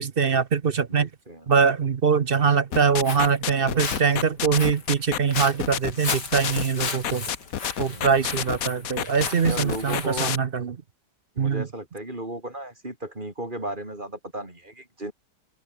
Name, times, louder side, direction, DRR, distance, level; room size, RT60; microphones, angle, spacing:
voice 1, 0.0-1.1 1.5-7.3 7.8-10.8 11.4-11.7, right 6 dB, 45° right, 0.8 m, -23 dB
voice 2, 0.9-1.5 7.8-8.2 9.5-10.3 11.3-15.1, right 1 dB, 30° right, 4.6 m, -35 dB
sound 1, 2.7-10.4, left 9 dB, 60° left, 1.3 m, -28 dB
Walk footsteps, 2.8-10.4, left 4 dB, 75° left, 3.6 m, -36 dB
omnidirectional pair, 1.8 m